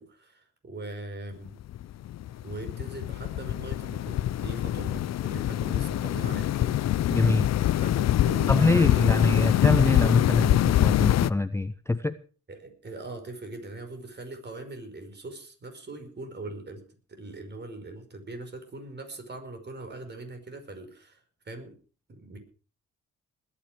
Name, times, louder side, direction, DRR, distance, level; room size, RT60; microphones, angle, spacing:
voice 1, 0.0-1.6 2.4-7.2 7.8-9.3 12.5-16.8 17.1-21.2 21.5-21.8 22.1-22.4, right 2 dB, 35° right, 6 dB, 5.3 m, -41 dB
sound 1, 1.5-11.3, left 13 dB, 60° left, 0.6 m, -24 dB
voice 2, 7.1-7.5 8.5-12.2, left 2 dB, 10° left, 13 dB, 0.6 m, -24 dB
20.5 x 10.0 x 4.9 m, 0.39 s
cardioid pair, 90°, 30 cm